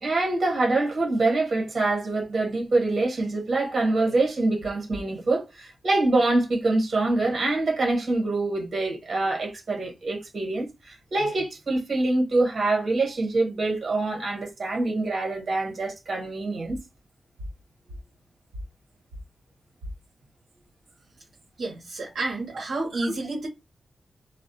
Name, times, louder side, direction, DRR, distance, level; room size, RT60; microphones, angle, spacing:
voice 1, 0.0-16.8, right 2 dB, 55° right, 1.2 m, -25 dB
voice 2, 21.6-23.5, right 2 dB, 75° right, 0.7 m, -30 dB
2.2 x 2.1 x 2.7 m
wide cardioid pair, 110°, 0 cm